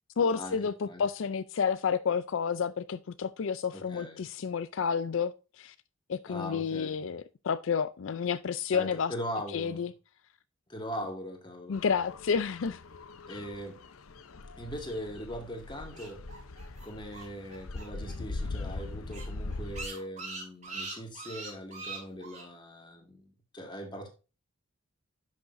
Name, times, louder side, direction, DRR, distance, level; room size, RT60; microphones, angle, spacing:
voice 1, 0.2-5.7 6.1-9.1 9.5-9.9 11.7-12.8, left 6 dB, 65° left, 0.4 m, -30 dB
voice 2, 3.7-4.2 6.3-7.0 8.7-9.8 10.7-11.8 13.3-13.8 14.6-16.2 16.8-24.1, equal, 20° left, 1.9 m, -40 dB
sound 1, 11.7-19.9, left 2 dB, 90° left, 0.8 m, -41 dB
sound 2, 15.7-18.1 18.4-18.5 18.8-18.9 19.1-22.4, right 3 dB, 35° right, 3.3 m, -42 dB
10.5 x 6.5 x 2.6 m
head